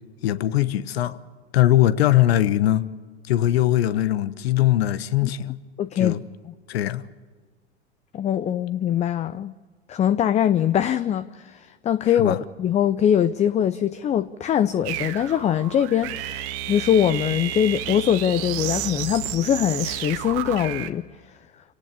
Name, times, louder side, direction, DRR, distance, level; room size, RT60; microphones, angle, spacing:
voice 1, 0.2-1.2 1.5-2.9 3.3-5.6 6.0-6.2 6.7-7.1 12.1-12.4, left 13 dB, 65° left, 1.2 m, -21 dB
voice 2, 5.8-6.2 6.5-6.6 8.1-9.5 9.9-21.1, left 9 dB, 20° left, 0.6 m, -22 dB
sound 1, 14.8-20.9, right 11 dB, 45° right, 1.8 m, -31 dB
27.5 x 18.5 x 6.9 m
hypercardioid pair, 95°, 33 cm